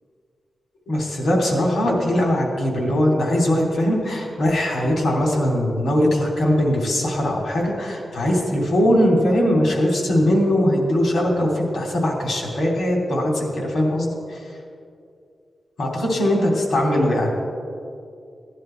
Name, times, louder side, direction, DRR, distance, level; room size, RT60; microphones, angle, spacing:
voice 1, 0.9-14.1 15.8-17.3, equal, 85° left, -1 dB, 3.1 m, -20 dB
17.0 x 10.5 x 4.6 m, 2.4 s
wide cardioid pair, 140°, 0 cm